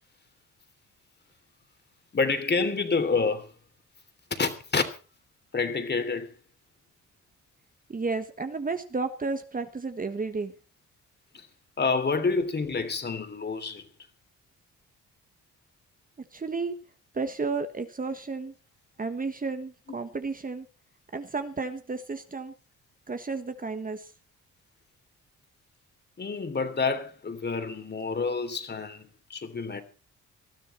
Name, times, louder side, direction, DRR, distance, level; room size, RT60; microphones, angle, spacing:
voice 1, 2.1-3.5 4.3-4.9 5.5-6.3 11.3-11.5 11.8-13.9 26.2-29.8, left 4 dB, 30° left, 3.1 m, -28 dB
voice 2, 7.9-10.5 16.3-16.7 17.1-18.5 19.0-20.7 21.1-22.5 23.1-24.1, right 4 dB, 25° right, 1.5 m, -32 dB
20.0 x 13.0 x 4.4 m
cardioid pair, 100°, 32 cm